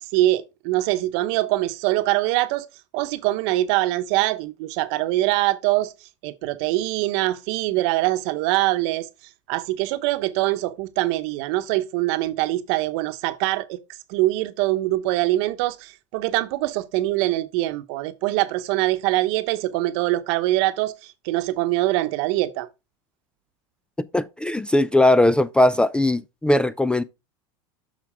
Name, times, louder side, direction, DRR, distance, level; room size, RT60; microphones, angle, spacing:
voice 1, 0.0-2.7 2.9-5.9 6.2-9.1 9.5-13.8 14.1-22.7, right 17 dB, 65° right, 1.0 m, -23 dB
voice 2, 24.1-27.0, left 1 dB, 5° left, 0.3 m, -19 dB
7.4 x 6.1 x 3.4 m
supercardioid pair, 110°, 16 cm